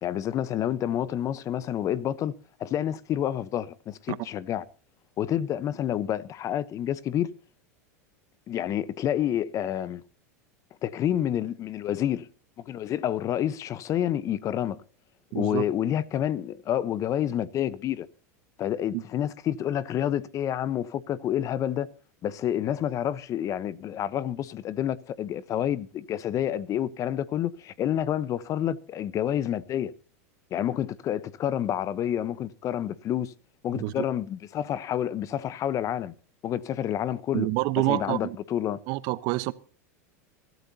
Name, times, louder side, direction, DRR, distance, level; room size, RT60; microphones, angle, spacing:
voice 1, 0.0-2.3 2.6-4.6 5.2-7.3 8.5-10.0 10.8-12.3 12.6-14.8 15.3-18.1 18.6-21.9 22.2-29.9 30.5-33.3 33.6-36.1 36.4-37.5 37.9-38.8, left 10 dB, 40° left, 0.9 m, -29 dB
voice 2, 15.3-15.6 33.7-34.1 37.3-38.4 38.9-39.5, right 20 dB, 55° right, 1.0 m, -27 dB
23.0 x 13.5 x 2.8 m
hypercardioid pair, 100°, 9 cm